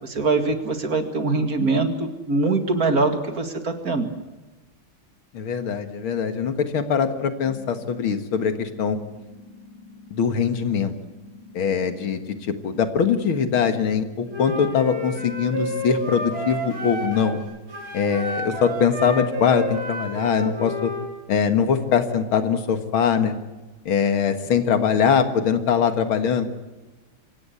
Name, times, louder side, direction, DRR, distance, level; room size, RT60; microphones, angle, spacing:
voice 1, 0.0-4.1, right 3 dB, 45° right, 7 dB, 2.4 m, -23 dB
voice 2, 5.3-9.0 10.1-10.9 11.5-17.4 17.9-20.9 21.3-23.3 23.9-26.4, left 7 dB, 75° left, 9 dB, 2.4 m, -22 dB
sound 1, 7.4-17.4, left 3 dB, 50° left, 5.9 m, -47 dB
Wind instrument woodwind instrument, 14.3-17.4 17.7-21.1, equal, 70° right, 5.8 m, -30 dB
25.5 x 16.5 x 8.3 m, 1.2 s
omnidirectional pair, 2.3 m